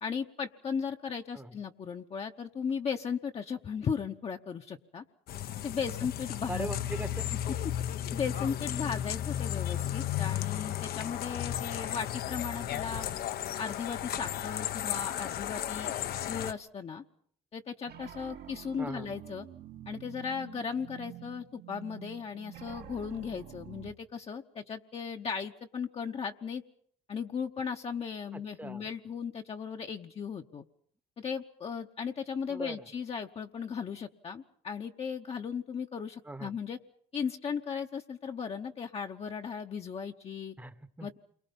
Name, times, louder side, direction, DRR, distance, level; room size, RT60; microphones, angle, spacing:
voice 1, 0.0-5.0 5.6-6.7 8.1-13.1 13.6-17.0 17.5-19.5 19.9-26.6 27.1-30.6 31.2-36.8 37.1-40.5 41.0-41.2, left 6 dB, 35° left, 3 dB, 1.0 m, -36 dB
sound 1, 5.3-16.5, left 11 dB, 65° left, 0.9 m, -34 dB
voice 2, 6.5-7.2 11.8-11.9 18.8-19.1 28.3-28.9 32.5-32.9 36.2-36.6 40.6-41.1, right 2 dB, 10° right, 13 dB, 1.0 m, -41 dB
sound 2, 17.8-23.9, right 11 dB, 65° right, 1.7 m, -48 dB
28.5 x 23.5 x 5.4 m, 0.63 s
cardioid pair, 110°, 17 cm